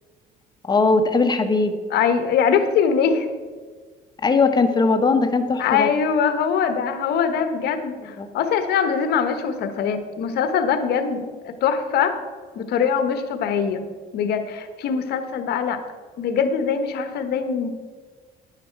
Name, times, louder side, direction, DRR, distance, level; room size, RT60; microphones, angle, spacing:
voice 1, 0.6-1.8 4.2-5.9 8.2-8.3, left 3 dB, 25° left, 7 dB, 1.1 m, -19 dB
voice 2, 1.9-3.3 5.6-12.2 12.5-13.8 14.1-15.8 16.2-17.7, left 7 dB, 70° left, 8 dB, 1.1 m, -22 dB
11.0 x 9.1 x 4.6 m, 1.5 s
cardioid pair, 110°, 17 cm